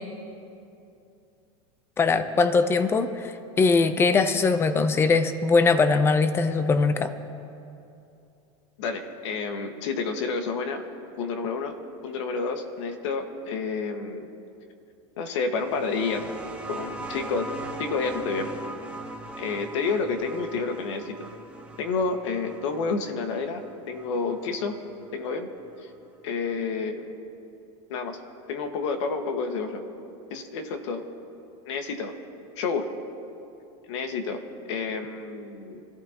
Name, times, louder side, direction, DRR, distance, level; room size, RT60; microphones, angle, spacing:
voice 1, 2.0-3.3 3.6-7.1, left 4 dB, 15° left, 10 dB, 0.7 m, -21 dB
voice 2, 8.8-10.8 11.2-11.8 12.0-14.3 15.2-16.3 16.7-17.5 17.8-18.5 19.4-21.3 21.8-24.8 25.1-25.5 26.2-27.1 27.9-28.2 28.5-29.8 30.3-31.0 31.7-32.1 32.6-32.9 33.9-34.4 34.7-35.8, left 4 dB, 75° left, 5 dB, 1.7 m, -29 dB
sound 1, 15.5-24.8 25.9-26.0, right 2 dB, 10° right, 1.1 m, -40 dB
26.0 x 14.0 x 3.0 m, 2.7 s
supercardioid pair, 150°, 15 cm